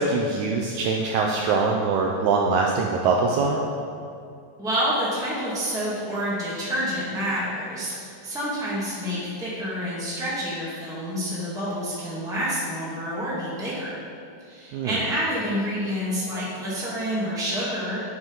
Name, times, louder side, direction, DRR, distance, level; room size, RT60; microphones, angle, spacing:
voice 1, 0.0-3.6 14.7-15.0, right 4 dB, 80° right, 0 dB, 1.8 m, -23 dB
voice 2, 4.6-14.0 14.4-18.0, equal, ahead, -8 dB, 1.3 m, -28 dB
8.1 x 6.0 x 5.5 m, 2.4 s
omnidirectional pair, 4.0 m